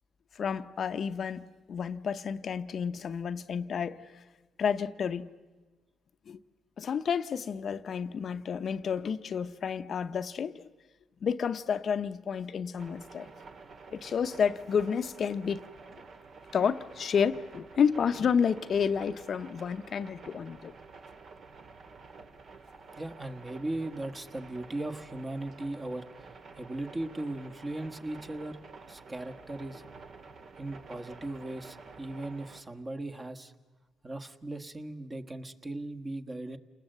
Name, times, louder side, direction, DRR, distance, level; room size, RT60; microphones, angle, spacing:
voice 1, 0.3-4.2 4.6-5.3 6.3-6.4 6.8-10.7 11.2-13.3 13.9-15.6 16.5-20.7, left 7 dB, 55° left, 0.8 m, -30 dB
sound 1, 12.8-32.6, right 4 dB, 60° right, 1.9 m, -50 dB
voice 2, 22.7-26.1 26.6-28.6 28.9-29.9 30.6-33.5 34.0-36.6, right 2 dB, 25° right, 1.4 m, -38 dB
28.5 x 20.0 x 7.9 m
cardioid pair, 90°, 0 cm